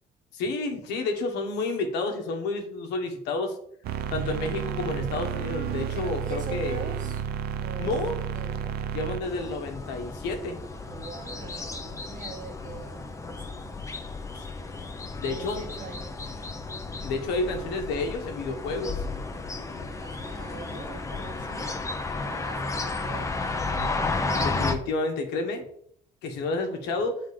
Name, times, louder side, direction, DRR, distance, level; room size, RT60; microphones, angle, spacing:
voice 1, 0.3-3.6 4.1-7.0 7.8-8.2 8.9-10.6 14.3-14.4 15.1-15.6 17.0-19.0 24.4-25.7 26.2-27.2, left 3 dB, 85° left, 3 dB, 1.4 m, -30 dB
sound 1, 3.8-9.2, right 7 dB, 70° right, 0.6 m, -31 dB
voice 2, 5.9-7.2 7.6-8.8 10.9-13.6 15.3-16.3 19.8-21.8 22.1-24.4, right 4 dB, 50° right, 2 dB, 1.7 m, -43 dB
sound 2, 9.2-24.7, left 3 dB, 20° left, 0.8 m, -33 dB
7.0 x 3.9 x 5.0 m, 0.68 s
cardioid pair, 110°, 17 cm